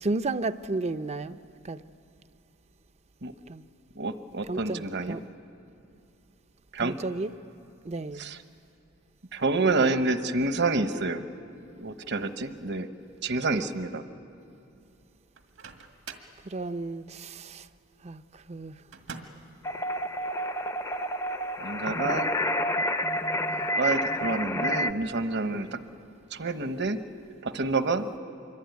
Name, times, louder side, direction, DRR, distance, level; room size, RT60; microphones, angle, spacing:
voice 1, 0.0-1.4 1.6-1.8 3.5-3.6 4.4-5.2 6.8-7.3 7.8-8.3 9.7-10.0 13.5-13.6 16.5-17.7 18.0-18.8 23.5-23.7, right 2 dB, 35° right, 0.6 m, -33 dB
voice 2, 4.0-5.2 6.7-7.0 8.2-8.4 9.3-11.2 11.8-12.9 13.2-14.0 21.6-22.3 23.8-25.8 26.3-27.0 27.4-28.1, right 3 dB, 55° right, 1.1 m, -28 dB
Microwave oven, 15.3-16.4 18.9-19.5, right 5 dB, 80° right, 2.0 m, -44 dB
sound 1, 19.6-24.9, equal, 15° left, 0.6 m, -29 dB
25.5 x 23.5 x 9.4 m
head